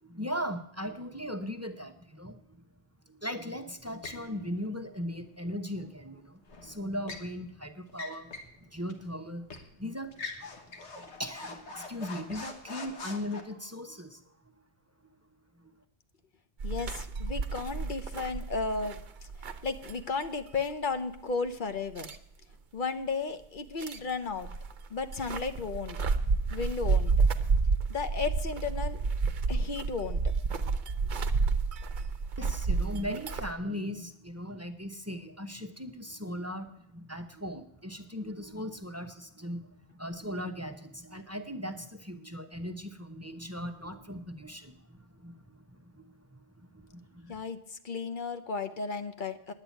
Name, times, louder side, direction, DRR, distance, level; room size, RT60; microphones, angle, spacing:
voice 1, 0.0-2.6 3.1-8.3 8.6-9.5 9.8-10.1 11.0-14.2 15.6-15.7 32.4-47.4, equal, 15° right, 7 dB, 0.7 m, -38 dB
sound 1, 4.0-4.3 6.5-7.3 7.9-8.6 8.9-9.0 9.5-9.7 10.1-13.4, left 3 dB, 90° left, 1.7 m, -43 dB
voice 2, 16.6-19.0 19.6-22.1 22.7-24.5 24.9-26.0 26.5-27.3 27.9-29.0 29.5-30.3 47.3-49.5, left 4 dB, 50° left, 9 dB, 0.9 m, -34 dB
sound 2, 16.6-20.2 20.6-20.7 22.0-22.2 23.8-24.1 24.4-33.5, right 4 dB, 50° right, 0.8 m, -30 dB
10.0 x 8.8 x 9.3 m, 0.73 s
omnidirectional pair, 1.1 m